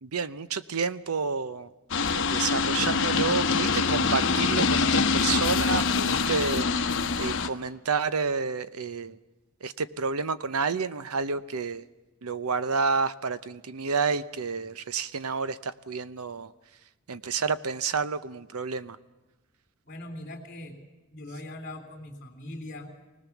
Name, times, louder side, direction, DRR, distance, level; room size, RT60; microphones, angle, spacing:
voice 1, 0.0-1.7 2.1-9.2 9.6-11.8 12.2-16.5 17.1-19.0, right 5 dB, 85° right, 14 dB, 0.8 m, -30 dB
sound 1, 1.9-7.5, left 4 dB, 60° left, 1.1 m, -25 dB
voice 2, 19.8-20.8 21.1-22.9, left 1 dB, 40° left, -5 dB, 3.0 m, -41 dB
25.0 x 18.5 x 7.2 m, 1.1 s
head